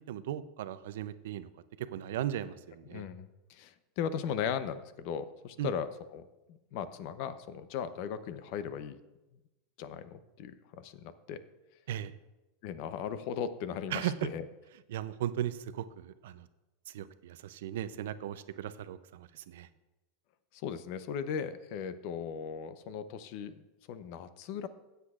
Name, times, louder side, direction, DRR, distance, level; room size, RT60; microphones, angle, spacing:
voice 1, 0.0-1.5 1.8-3.1 5.6-5.7 11.9-12.1 13.9-14.1 14.9-16.5 16.9-19.7, right 11 dB, 80° right, 13 dB, 0.5 m, -37 dB
voice 2, 2.9-9.0 9.8-11.4 12.6-14.4 20.5-24.7, left 7 dB, 55° left, 13 dB, 0.6 m, -38 dB
16.0 x 8.1 x 2.4 m, 1.0 s
supercardioid pair, 145°, 0 cm